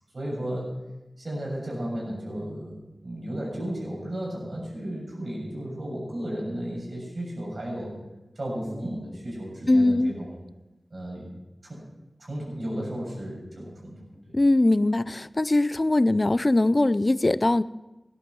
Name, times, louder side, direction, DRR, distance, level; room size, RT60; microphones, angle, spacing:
voice 1, 0.1-0.7 1.2-2.8 3.0-8.0 8.4-10.4 10.9-11.3 11.6-11.8 12.2-14.0, right 1 dB, 65° right, -3 dB, 7.1 m, -34 dB
voice 2, 9.7-10.1 14.3-17.6, left 2 dB, 40° left, 17 dB, 0.5 m, -21 dB
17.5 x 11.5 x 6.1 m, 1.0 s
wide cardioid pair, 70°, 0 cm